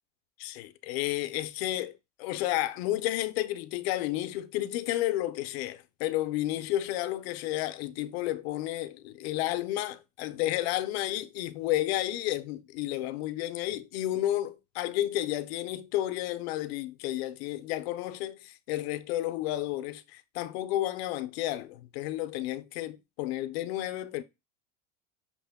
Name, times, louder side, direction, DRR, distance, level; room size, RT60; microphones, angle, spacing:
voice 1, 0.4-1.9 2.2-24.2, left 14 dB, 75° left, 0.5 m, -31 dB
5.9 x 2.1 x 3.5 m
supercardioid pair, 140°, 31 cm